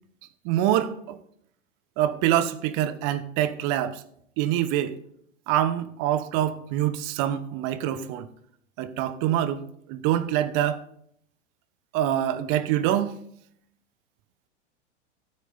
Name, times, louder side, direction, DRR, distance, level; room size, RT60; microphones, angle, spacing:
voice 1, 0.4-1.2 2.0-4.0 4.4-4.9 5.5-8.3 8.8-10.8 11.9-13.2, right 11 dB, 40° right, 1.0 m, -25 dB
13.0 x 9.3 x 3.9 m
figure-of-eight pair, 95°, 37 cm